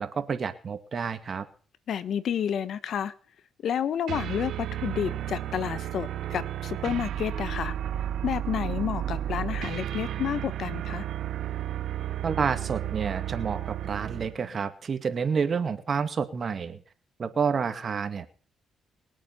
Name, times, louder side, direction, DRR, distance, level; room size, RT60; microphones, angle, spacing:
voice 1, 0.0-1.5 12.2-16.8 17.2-18.3, right 6 dB, 45° right, 9 dB, 2.1 m, -29 dB
voice 2, 1.9-3.1 3.6-7.7 8.2-11.1, left 9 dB, 65° left, 14 dB, 1.3 m, -30 dB
sound 1, 4.1-14.4, right 11 dB, 70° right, 0.7 m, -33 dB
22.5 x 8.7 x 5.8 m, 0.42 s
cardioid pair, 90°, 0 cm